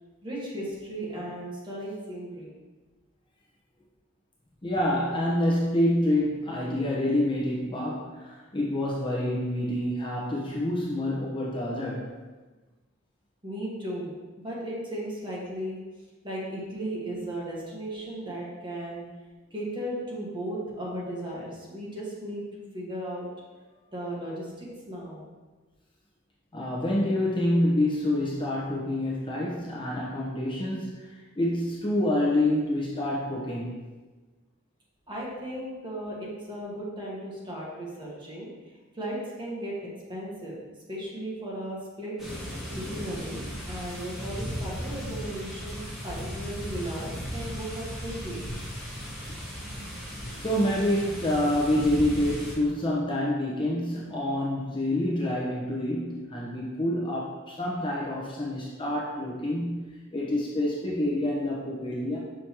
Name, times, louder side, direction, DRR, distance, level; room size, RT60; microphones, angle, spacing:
voice 1, 0.2-2.5 13.4-14.1 14.4-15.8 16.2-19.0 19.5-23.3 23.9-25.2 35.1-40.6 40.9-42.1 42.7-43.4 43.7-48.4, right 1 dB, 25° right, -5 dB, 1.6 m, -36 dB
voice 2, 4.6-12.1 18.3-18.4 26.5-33.8 49.2-49.3 50.4-62.2, left 1 dB, 25° left, -5 dB, 0.9 m, -27 dB
sound 1, 42.2-52.5, equal, ahead, 1.5 m, -36 dB
6.4 x 5.1 x 3.0 m, 1.3 s
head